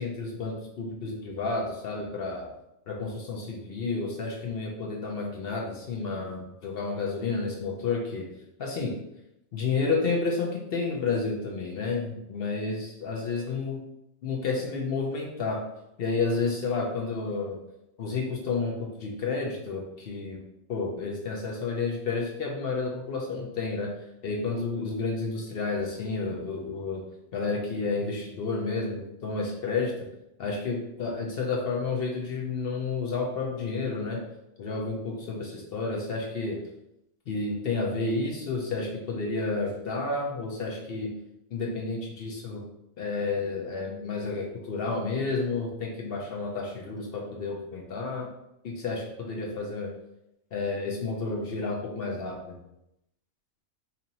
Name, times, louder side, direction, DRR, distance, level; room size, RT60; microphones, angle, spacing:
voice 1, 0.0-2.5 2.9-8.2 8.6-8.9 9.5-13.8 14.2-15.6 16.0-17.6 18.0-20.4 20.7-23.9 24.2-27.0 27.3-29.9 30.4-34.2 34.6-36.6 37.3-41.1 41.5-42.6 43.0-48.3 48.6-49.9 50.5-52.6, left 4 dB, 55° left, -1 dB, 0.7 m, -31 dB
2.8 x 2.6 x 4.0 m, 0.85 s
omnidirectional pair, 1.4 m